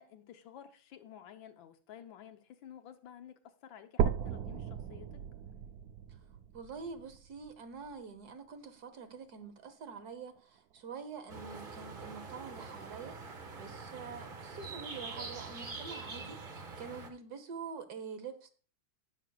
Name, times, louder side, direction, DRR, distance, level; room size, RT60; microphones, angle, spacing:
voice 1, 0.0-5.2, left 9 dB, 75° left, 1.6 m, -52 dB
sound 1, 4.0-8.0 8.6-8.7 9.2-9.3 9.7-9.8 10.6-10.7, right 8 dB, 90° right, 0.8 m, -36 dB
voice 2, 6.5-13.2 13.6-18.5, right 5 dB, 55° right, 1.4 m, -46 dB
sound 2, 11.3-17.1, right 4 dB, 40° right, 0.8 m, -45 dB
18.5 x 6.3 x 2.3 m
omnidirectional pair, 2.2 m